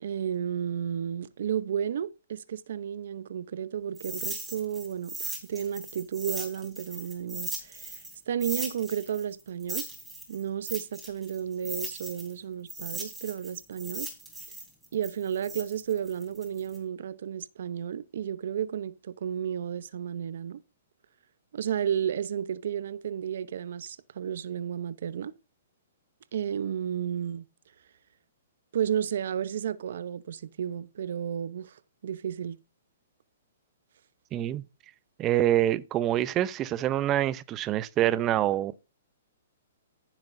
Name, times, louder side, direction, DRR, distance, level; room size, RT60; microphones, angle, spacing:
voice 1, 0.0-9.9 10.3-14.1 14.9-20.6 21.5-25.3 26.3-27.4 28.7-32.6, right 9 dB, 65° right, 0.8 m, -32 dB
sound 1, 3.9-8.1 8.4-12.3 12.7-16.8, right 2 dB, 5° right, 3.5 m, -38 dB
voice 2, 34.3-34.6 35.2-38.7, right 13 dB, 25° right, 0.7 m, -26 dB
15.0 x 7.3 x 2.7 m
hypercardioid pair, 140°, 0 cm